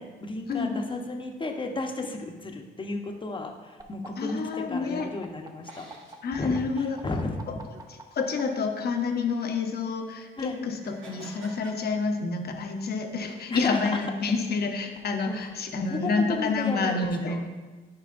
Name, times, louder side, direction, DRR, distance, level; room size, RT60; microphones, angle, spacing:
voice 1, 0.0-5.9 6.3-6.6 7.0-7.3 10.4-10.6 13.5-13.8 15.2-15.4 15.7-17.4, left 2 dB, 25° left, 3 dB, 0.9 m, -33 dB
sound 1, 3.8-8.4 9.6-11.8, right 3 dB, 20° right, 0.8 m, -48 dB
voice 2, 4.2-5.1 6.2-7.0 8.1-17.5, left 4 dB, 50° left, 4 dB, 1.0 m, -28 dB
sound 2, 5.6-7.0 7.7-7.9 10.8-12.3 12.7-13.4 14.2-14.4, right 2 dB, 75° right, 1.6 m, -50 dB
10.5 x 5.0 x 2.5 m, 1.3 s
cardioid pair, 90°, 20 cm